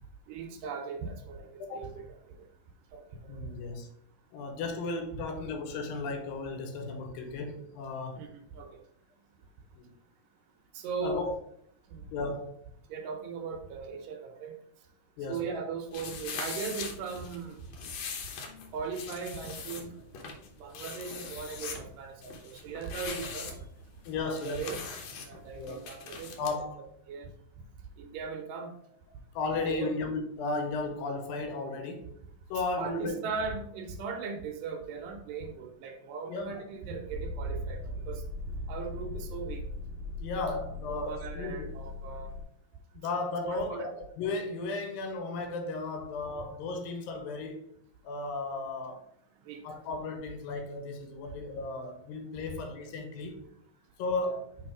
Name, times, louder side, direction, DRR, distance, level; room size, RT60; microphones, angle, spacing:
voice 1, 0.3-2.4 2.9-3.5 5.1-5.2 8.2-8.8 10.7-11.3 11.9-12.0 12.9-14.6 15.3-17.6 18.7-20.0 20.6-23.6 24.2-25.0 25.2-26.4 27.1-27.3 28.0-28.7 29.7-30.0 32.8-38.2 38.7-39.6 40.9-42.4 43.4-43.9 49.5-49.6 54.2-54.4, right 5 dB, 75° right, 2.2 m, -38 dB
voice 2, 3.3-3.9 4.3-8.3 9.7-9.9 11.0-11.3 12.1-12.6 15.2-15.5 24.1-24.8 25.6-25.8 26.4-26.8 29.3-32.1 32.5-33.2 36.3-36.6 40.2-41.7 42.9-47.7 48.0-49.0 49.6-53.4 54.0-54.5, left 3 dB, 85° left, 2.7 m, -35 dB
sound 1, 15.9-26.5, left 5 dB, 70° left, 1.8 m, -42 dB
Motor vehicle (road), 37.1-42.4, left 1 dB, 30° right, 0.7 m, -38 dB
6.1 x 3.5 x 4.7 m
omnidirectional pair, 4.1 m